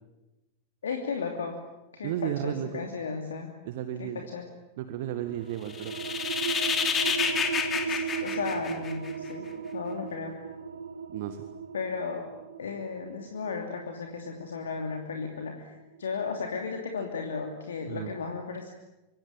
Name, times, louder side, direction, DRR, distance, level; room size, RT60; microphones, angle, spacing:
voice 1, 0.8-1.6 1.9-3.6 4.0-4.5 7.9-10.3 11.7-12.3 12.6-18.7, left 5 dB, 65° left, 3 dB, 2.8 m, -35 dB
voice 2, 2.0-2.9 3.7-4.3 4.8-6.0 11.1-11.4 17.9-18.1, right 10 dB, 50° right, 9 dB, 1.8 m, -33 dB
sound 1, 5.2-16.4, right 6 dB, 70° right, 1.2 m, -37 dB
sound 2, 5.7-9.3, left 6 dB, 25° left, 3.3 m, -29 dB
26.0 x 25.0 x 8.9 m, 1.0 s
figure-of-eight pair, 90°, 0 cm